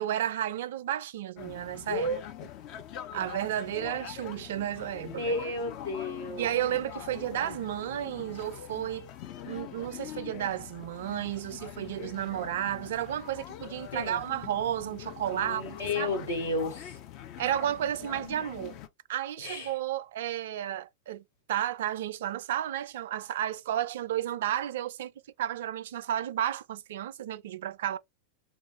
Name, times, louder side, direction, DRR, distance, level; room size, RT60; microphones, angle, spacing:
voice 1, 0.0-2.1 3.1-5.3 6.4-9.1 9.5-16.1 17.4-18.8 19.1-25.1 25.4-28.0, right 11 dB, 55° right, 0.3 m, -32 dB
sound 1, 1.4-18.9, left 10 dB, 40° left, 0.5 m, -44 dB
voice 2, 5.2-6.5 13.9-14.2 15.3-17.0 19.4-19.7, left 2 dB, 70° left, 1.5 m, -32 dB
3.4 x 2.5 x 3.0 m
figure-of-eight pair, 90°, 0 cm